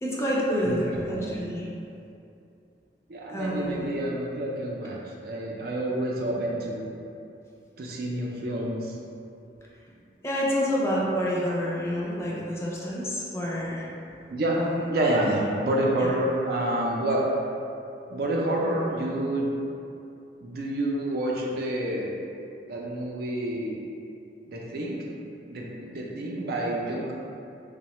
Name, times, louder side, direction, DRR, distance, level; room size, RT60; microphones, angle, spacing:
voice 1, 0.0-1.6 3.3-3.9 10.2-13.9 14.6-14.8 16.0-16.1, equal, 15° left, -5 dB, 0.3 m, -28 dB
voice 2, 0.6-1.5 3.1-6.9 7.8-9.0 14.3-14.6 14.9-17.2 18.1-19.5 20.4-22.1 22.7-23.8 24.5-25.0 25.5-27.1, right 1 dB, 55° right, -2 dB, 0.4 m, -28 dB
3.0 x 2.0 x 2.9 m, 2.6 s
head